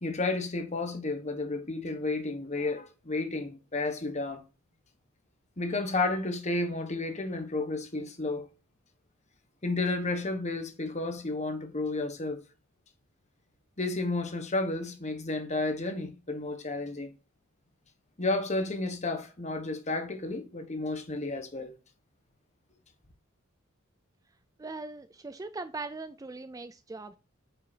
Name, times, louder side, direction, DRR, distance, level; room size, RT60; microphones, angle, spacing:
voice 1, 0.0-4.4 5.6-8.5 9.6-12.4 13.8-17.1 18.2-21.7, left 2 dB, 30° left, 1.3 m, -32 dB
voice 2, 24.6-27.2, right 3 dB, 15° right, 0.3 m, -40 dB
9.2 x 5.6 x 2.8 m
head